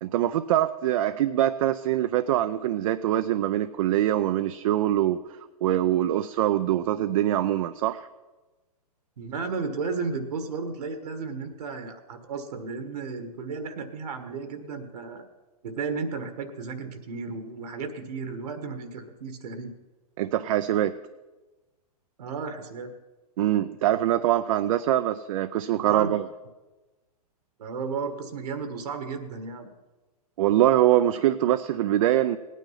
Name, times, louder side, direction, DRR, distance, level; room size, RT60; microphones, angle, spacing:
voice 1, 0.0-5.2 5.6-8.1 20.2-20.9 23.4-26.3 30.4-32.4, right 12 dB, 55° right, 9 dB, 0.5 m, -23 dB
voice 2, 9.2-15.2 15.6-19.7 22.2-23.0 25.8-26.1 27.6-29.7, right 4 dB, 75° right, 9 dB, 1.5 m, -34 dB
17.0 x 9.2 x 5.6 m, 1.2 s
hypercardioid pair, 130°, 20 cm